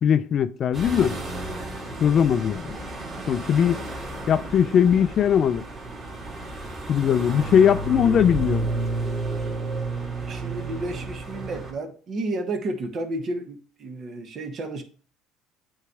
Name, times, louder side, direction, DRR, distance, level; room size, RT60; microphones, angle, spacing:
voice 1, 0.0-1.2 2.0-2.8 3.3-3.8 4.3-5.6 6.9-8.7, left 8 dB, 45° left, 0.4 m, -20 dB
sound 1, 0.7-11.7, right 2 dB, 30° right, 2.4 m, -32 dB
voice 2, 10.3-14.8, right 2 dB, 45° right, 1.3 m, -32 dB
8.3 x 3.2 x 4.8 m
supercardioid pair, 85°, 0 cm